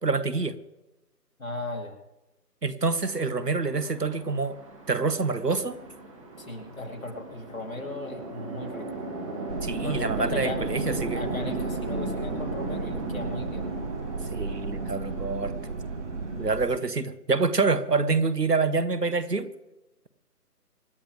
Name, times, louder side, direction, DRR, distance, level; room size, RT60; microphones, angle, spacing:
voice 1, 0.0-0.5 2.6-4.6 4.9-5.7 9.6-11.2 14.3-15.5 16.4-19.5, right 4 dB, 75° right, 14 dB, 1.4 m, -26 dB
voice 2, 1.4-2.0 6.1-8.9 9.8-10.6 11.1-13.7, left 2 dB, 55° left, 3 dB, 2.7 m, -37 dB
Chatter / Traffic noise roadway noise / Train, 3.0-16.5, right 2 dB, 20° right, 2.3 m, -36 dB
sound 1, 9.5-16.8, right 4 dB, 50° right, 0.5 m, -36 dB
25.5 x 11.5 x 3.5 m, 0.99 s
figure-of-eight pair, 155°, 48 cm